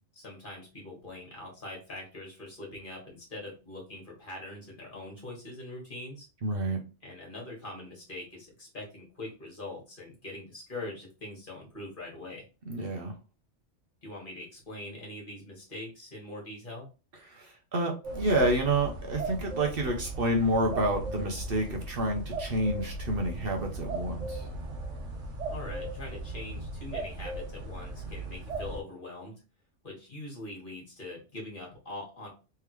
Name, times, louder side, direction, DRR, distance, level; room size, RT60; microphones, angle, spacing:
voice 1, 0.1-6.3 7.0-12.4 14.0-16.9 25.5-29.3 29.8-32.3, left 2 dB, 45° left, -2 dB, 1.8 m, -42 dB
voice 2, 6.4-6.8 12.7-13.1 17.3-24.5, right 1 dB, 55° right, 2 dB, 1.0 m, -29 dB
sound 1, 18.0-28.8, right 2 dB, 80° right, 1.3 m, -37 dB
3.6 x 3.4 x 3.1 m, 0.31 s
omnidirectional pair, 1.2 m